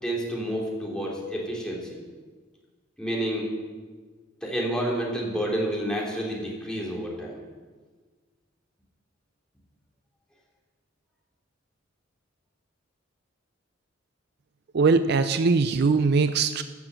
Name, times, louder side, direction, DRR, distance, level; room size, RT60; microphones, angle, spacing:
voice 1, 0.0-2.0 3.0-3.5 4.4-7.4, equal, 5° left, -3 dB, 2.9 m, -29 dB
voice 2, 14.7-16.6, right 4 dB, 55° right, 11 dB, 0.5 m, -21 dB
14.0 x 6.9 x 7.5 m, 1.4 s
head